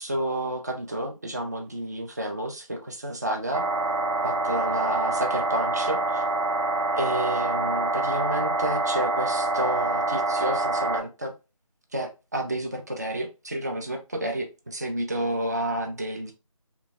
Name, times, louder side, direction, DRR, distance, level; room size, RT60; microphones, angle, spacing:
voice 1, 0.0-3.6 4.2-6.2 6.9-11.3 11.9-16.3, right 1 dB, 30° right, 0.4 m, -30 dB
sound 1, 3.5-11.0, right 2 dB, 65° right, 0.9 m, -26 dB
2.9 x 2.2 x 2.6 m
figure-of-eight pair, 165°, 18 cm